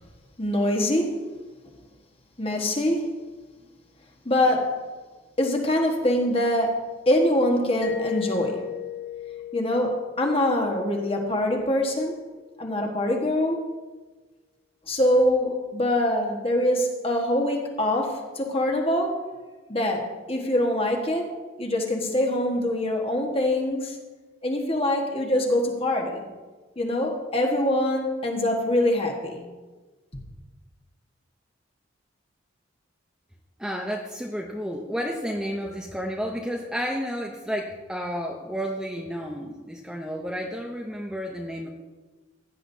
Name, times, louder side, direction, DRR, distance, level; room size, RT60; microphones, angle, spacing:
voice 1, 0.4-1.3 2.4-3.0 4.2-4.8 5.4-8.6 9.5-12.2 12.6-13.6 14.9-19.3 19.7-21.3 21.6-24.0 24.4-26.2 26.8-29.5, left 1 dB, 30° left, 1 dB, 1.4 m, -24 dB
Mallet percussion, 7.8-12.4, left 6 dB, 85° left, 1.1 m, -36 dB
voice 2, 33.6-41.7, equal, 5° right, 0 dB, 0.7 m, -31 dB
16.0 x 9.7 x 2.8 m, 1.3 s
head